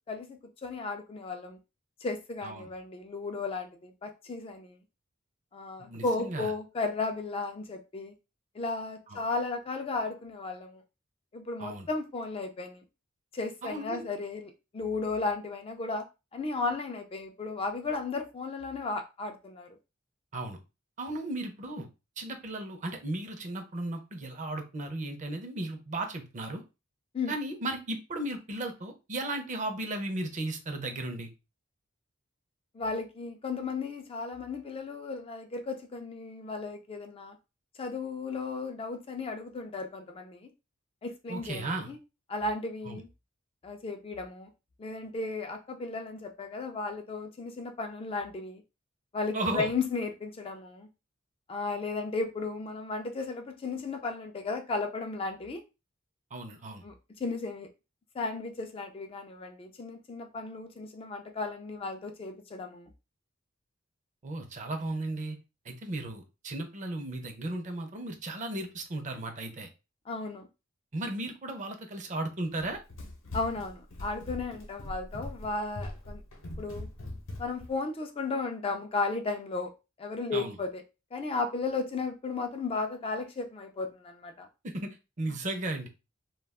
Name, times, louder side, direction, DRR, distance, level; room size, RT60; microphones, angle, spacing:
voice 1, 0.1-1.6 2.0-4.8 5.5-8.1 8.5-10.8 11.3-12.8 13.3-16.0 16.3-19.7 27.1-27.3 32.7-37.4 37.8-40.5 41.0-42.0 42.3-43.1 43.6-44.5 44.8-48.6 49.1-50.9 51.5-55.6 56.8-56.9 57.2-57.7 58.1-62.9 70.1-70.5 73.3-76.2 76.6-76.9 77.4-79.7 80.0-80.8 81.1-84.5, left 3 dB, 30° left, 0.4 m, -35 dB
voice 2, 5.8-6.5 9.1-9.2 11.6-11.9 13.6-14.0 20.3-20.6 21.0-21.9 22.2-26.6 27.3-31.3 41.3-41.9 42.9-43.0 49.3-49.7 56.3-56.8 64.2-65.4 65.6-69.7 70.9-72.8 80.3-80.6 84.6-85.9, right 2 dB, 40° right, 0.5 m, -35 dB
Run, 72.5-77.7, left 1 dB, 75° left, 0.8 m, -41 dB
2.3 x 2.2 x 3.4 m
head